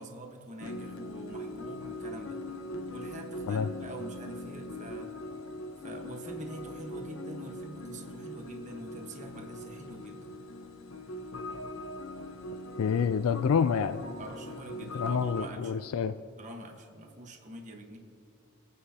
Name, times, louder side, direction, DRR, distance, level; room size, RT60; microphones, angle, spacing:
voice 1, 0.0-2.4 2.9-5.1 5.8-10.3 14.2-15.9 16.4-18.0, right 1 dB, 35° right, 2 dB, 1.3 m, -45 dB
sound 1, 0.6-15.5, left 1 dB, 60° left, 0.8 m, -41 dB
voice 2, 12.8-14.0 14.9-16.1, left 6 dB, 85° left, 10 dB, 0.4 m, -28 dB
25.0 x 9.4 x 2.8 m, 2.5 s
head